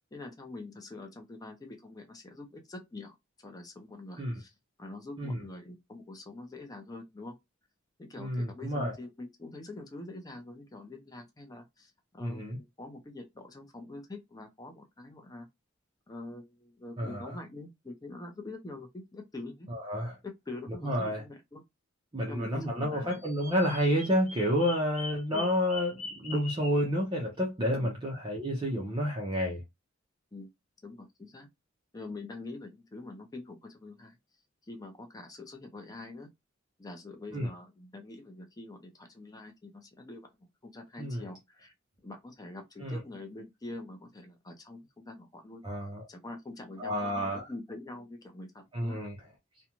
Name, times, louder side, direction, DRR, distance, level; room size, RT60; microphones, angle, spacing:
voice 1, 0.1-4.5 4.8-7.4 8.0-15.5 16.1-19.7 20.2-21.6 22.3-23.2 25.3-25.4 27.8-27.9 30.3-30.5 30.8-31.5 31.9-34.2 34.7-36.3 36.8-40.3 40.6-41.7 42.0-45.7 46.1-49.0, left 2 dB, 20° left, 0.5 m, -45 dB
voice 2, 8.2-8.9 12.2-12.6 17.0-17.4 19.7-20.2 20.8-21.2 22.1-29.6 37.3-37.5 41.0-41.2 42.8-43.0 45.6-46.1 46.8-47.5 48.7-49.2, equal, 25° right, 0.6 m, -30 dB
Bird vocalization bird call bird song, 23.1-26.9, left 3 dB, 35° left, 1.1 m, -43 dB
2.5 x 2.2 x 2.9 m
head